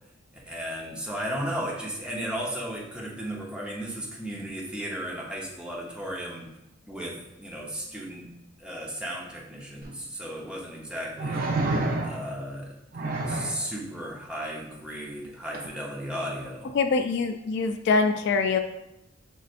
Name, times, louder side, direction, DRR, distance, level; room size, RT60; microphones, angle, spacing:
voice 1, 0.5-6.5 6.9-8.3 8.6-11.5 12.0-12.7 13.3-16.7, equal, 5° right, -3 dB, 0.8 m, -35 dB
sound 1, 9.8-9.9 11.2-12.4 12.9-13.6 15.5-15.7, right 2 dB, 50° right, 0.5 m, -28 dB
voice 2, 16.7-18.6, left 4 dB, 60° left, 7 dB, 0.3 m, -24 dB
6.2 x 3.2 x 2.5 m, 0.89 s
head